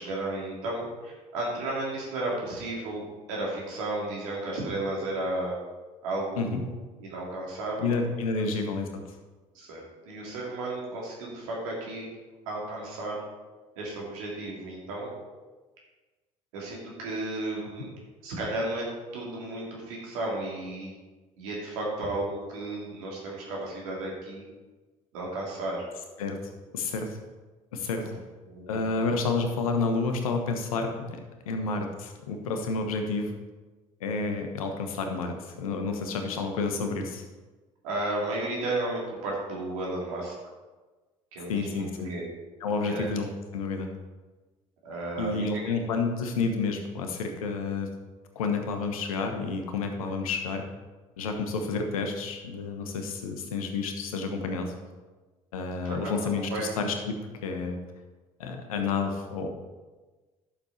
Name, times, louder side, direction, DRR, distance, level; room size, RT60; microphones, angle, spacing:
voice 1, 0.0-5.5 6.0-6.6 7.0-8.0 9.5-12.1 12.5-13.2 13.8-15.1 16.5-17.9 18.2-18.9 19.1-20.9 21.4-24.4 25.1-25.8 28.0-28.1 28.5-28.7 28.9-29.1 31.6-31.7 37.8-40.3 41.3-42.3 42.8-43.1 44.8-45.6 55.8-56.7, right 2 dB, 75° right, -3 dB, 3.1 m, -33 dB
voice 2, 7.8-8.9 26.2-26.4 26.7-27.2 27.7-28.1 28.7-31.2 31.5-33.3 34.0-37.2 41.5-42.1 42.6-43.9 45.2-47.9 48.3-50.6 51.2-54.7 55.5-57.2 57.4-57.8 58.4-59.5, left 4 dB, 80° left, 5 dB, 1.2 m, -30 dB
11.5 x 7.1 x 4.3 m, 1.3 s
hypercardioid pair, 55°, 18 cm